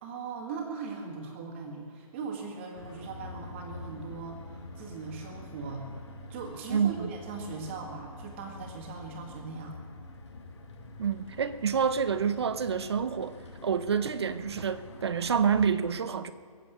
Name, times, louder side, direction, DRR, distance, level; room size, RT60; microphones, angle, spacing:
voice 1, 0.0-5.9 6.3-9.8, right 4 dB, 20° right, 1.8 m, -39 dB
sound 1, 2.7-15.7, left 2 dB, 45° left, 2.1 m, -46 dB
voice 2, 6.7-7.1 11.0-13.3 13.6-16.3, right 7 dB, 45° right, 0.7 m, -28 dB
22.5 x 7.6 x 7.9 m
hypercardioid pair, 175°, 19 cm